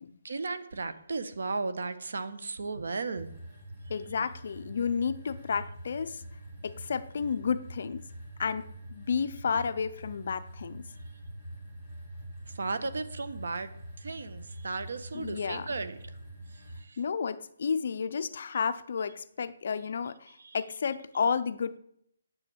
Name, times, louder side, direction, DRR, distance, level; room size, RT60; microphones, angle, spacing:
voice 1, 0.2-3.3 12.6-13.7 14.0-16.0 16.8-17.0 20.4-20.6, right 3 dB, 65° right, 1.4 m, -35 dB
sound 1, 3.1-16.8, right 1 dB, 10° right, 3.8 m, -45 dB
voice 2, 3.9-6.2 6.6-8.0 8.4-8.6 8.9-10.9 15.1-15.7 17.0-21.8, left 6 dB, 45° left, 0.7 m, -31 dB
9.3 x 8.3 x 8.0 m
hypercardioid pair, 175°, 0 cm